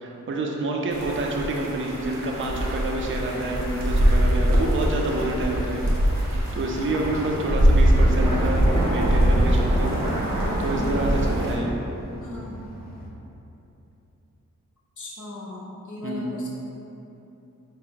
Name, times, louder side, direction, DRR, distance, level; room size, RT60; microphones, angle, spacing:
voice 1, 0.0-5.8 6.1-10.0 10.6-11.7 16.0-16.3, right 2 dB, 40° right, 0 dB, 0.4 m, -28 dB
sound 1, 0.9-11.6, equal, 85° right, 0.7 m, -22 dB
voice 2, 3.3-3.9 5.1-5.4 8.0-8.7 12.2-12.6 15.0-16.5, left 2 dB, 65° left, -4 dB, 0.7 m, -36 dB
sound 2, 4.3-13.1, left 1 dB, 30° left, 0.5 m, -42 dB
4.1 x 2.0 x 3.8 m, 2.9 s
wide cardioid pair, 90°, 33 cm